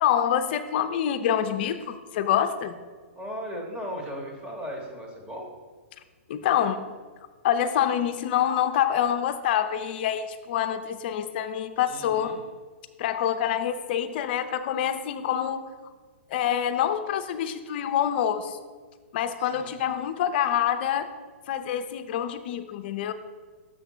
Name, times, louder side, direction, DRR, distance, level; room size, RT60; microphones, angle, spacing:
voice 1, 0.0-2.8 6.3-6.8 7.4-12.4 13.0-15.7 16.3-18.6 19.1-21.1 21.5-23.1, left 9 dB, 50° left, 10 dB, 0.5 m, -26 dB
voice 2, 3.1-5.5 11.9-12.4 19.4-19.7, equal, 15° right, 0 dB, 1.3 m, -37 dB
6.7 x 3.4 x 6.1 m, 1.5 s
hypercardioid pair, 140°, 7 cm